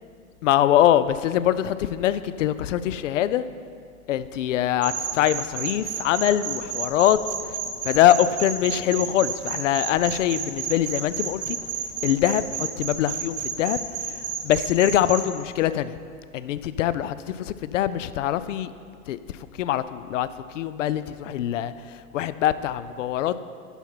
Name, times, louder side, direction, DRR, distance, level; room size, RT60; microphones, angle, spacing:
voice 1, 0.4-3.5 4.1-7.2 7.5-7.6 7.8-11.6 12.0-13.8 14.4-16.0 16.3-18.7 19.1-19.2 19.6-20.3 20.5-23.4, left 11 dB, 60° left, 14 dB, 0.5 m, -23 dB
sound 1, 4.8-15.2, right 7 dB, 50° right, 1.0 m, -32 dB
11.0 x 5.8 x 4.4 m, 2.2 s
figure-of-eight pair, 95°, 43 cm